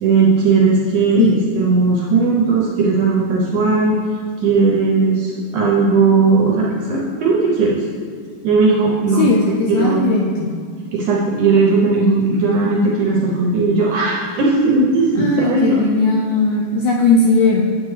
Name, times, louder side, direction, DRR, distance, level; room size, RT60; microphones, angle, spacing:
voice 1, 0.0-4.0 4.4-7.8 8.4-10.1 10.9-15.8, right 3 dB, 80° right, -2 dB, 1.8 m, -17 dB
voice 2, 9.2-10.5 15.2-17.6, left 3 dB, 80° left, -1 dB, 1.8 m, -17 dB
8.6 x 7.8 x 3.2 m, 2.1 s
omnidirectional pair, 4.3 m